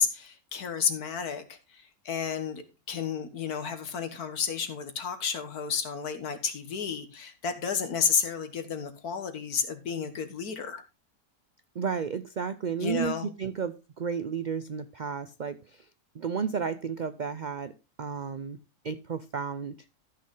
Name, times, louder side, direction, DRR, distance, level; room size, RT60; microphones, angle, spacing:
voice 1, 0.0-10.8 12.8-13.3, left 6 dB, 85° left, 1.9 m, -31 dB
voice 2, 11.7-15.9 16.1-17.7 18.0-18.6 18.8-19.7, right 6 dB, 70° right, 0.4 m, -32 dB
13.5 x 6.5 x 3.7 m
omnidirectional pair, 1.6 m